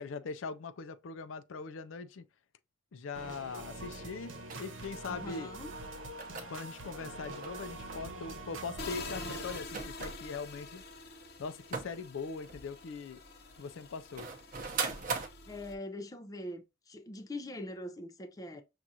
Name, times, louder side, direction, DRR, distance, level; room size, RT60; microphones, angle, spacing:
voice 1, 0.0-2.2 2.9-5.5 6.5-10.8 11.4-13.2 13.6-14.3, left 4 dB, 80° left, 0.4 m, -41 dB
sound 1, 3.1-9.6, right 2 dB, 85° right, 0.9 m, -45 dB
sound 2, 4.5-4.9 5.7-12.0 12.4-15.3, right 4 dB, 45° right, 0.7 m, -42 dB
voice 2, 5.0-5.7 15.5-18.6, left 1 dB, 20° left, 0.4 m, -42 dB
sound 3, 8.8-15.7, left 3 dB, 55° left, 0.8 m, -46 dB
6.1 x 2.4 x 2.7 m
head